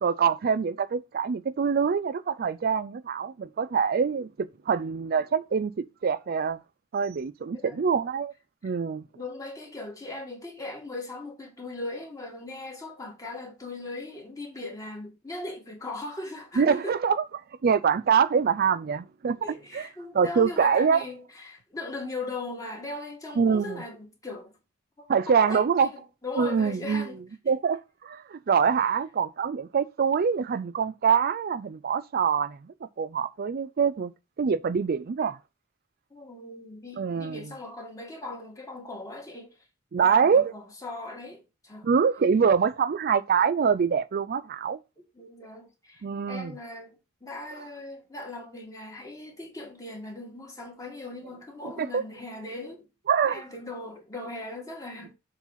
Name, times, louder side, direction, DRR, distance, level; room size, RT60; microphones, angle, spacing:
voice 1, 0.0-6.6 6.9-8.3 8.6-9.0 16.6-17.2 17.6-19.4 19.7-19.9 20.1-21.0 23.4-23.8 25.1-25.9 26.4-27.1 27.5-32.6 33.0-34.1 34.4-35.4 37.0-37.4 39.9-40.5 41.8-44.8 46.0-46.5 51.8-52.0 53.1-53.4, right 6 dB, 50° right, 0.4 m, -24 dB
voice 2, 9.1-17.0 19.4-24.5 25.0-27.5 36.1-39.5 40.0-41.9 45.1-52.9 53.3-55.1, left 2 dB, 15° left, 2.1 m, -39 dB
7.2 x 3.9 x 5.6 m
head